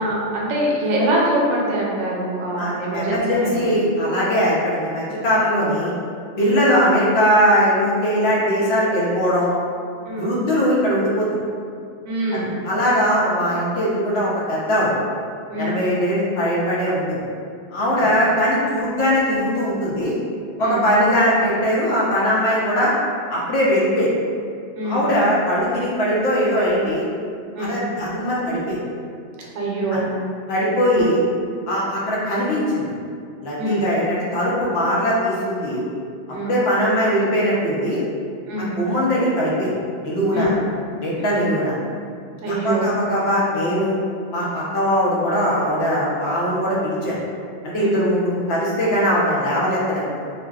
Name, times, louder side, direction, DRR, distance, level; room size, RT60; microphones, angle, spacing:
voice 1, 0.0-3.7 6.4-6.6 10.0-10.3 12.0-12.6 15.5-15.8 17.8-18.2 20.6-20.8 24.8-25.1 27.6-27.8 29.4-30.1 30.9-31.0 33.6-33.9 36.3-36.5 38.5-38.7 40.3-40.6 41.2-41.5 42.4-42.9 47.7-48.1, right 1 dB, 85° right, -4 dB, 0.9 m, -24 dB
voice 2, 2.6-5.9 6.4-9.5 10.1-11.3 12.3-15.0 15.6-17.2 17.7-20.1 20.6-22.9 23.3-24.1 24.8-27.0 27.6-28.8 29.9-30.0 30.5-31.2 31.7-32.9 33.4-35.8 36.4-38.0 38.6-39.7 40.0-40.6 41.0-41.8 42.5-43.9 44.3-47.2 47.6-50.2, equal, 65° left, -6 dB, 0.8 m, -20 dB
2.5 x 2.2 x 2.2 m, 2.3 s
omnidirectional pair, 1.2 m